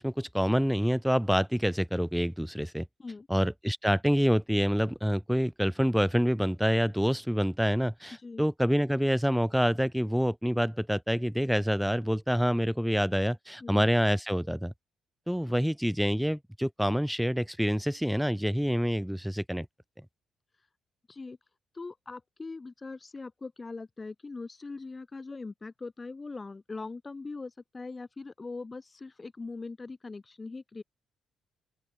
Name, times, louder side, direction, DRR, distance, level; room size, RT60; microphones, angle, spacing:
voice 1, 0.0-2.9 3.3-14.7 15.3-19.7, equal, ahead, 0.5 m, -27 dB
voice 2, 8.1-8.4 13.6-13.8 20.5-20.7 21.1-21.4 21.7-30.8, left 3 dB, 25° left, 1.3 m, -41 dB
open air
cardioid pair, 90°, 0 cm